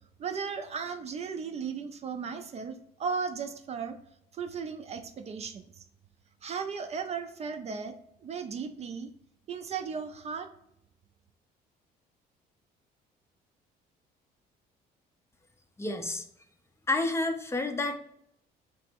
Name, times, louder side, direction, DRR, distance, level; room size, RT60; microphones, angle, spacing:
voice 1, 0.2-3.9 4.3-5.6 6.4-7.9 8.2-9.1 9.5-10.5, right 6 dB, 40° right, 8 dB, 0.5 m, -36 dB
voice 2, 15.8-16.2 16.9-18.0, left 2 dB, 15° left, 6 dB, 0.5 m, -29 dB
3.4 x 3.1 x 4.4 m, 0.74 s
cardioid pair, 110°, 17 cm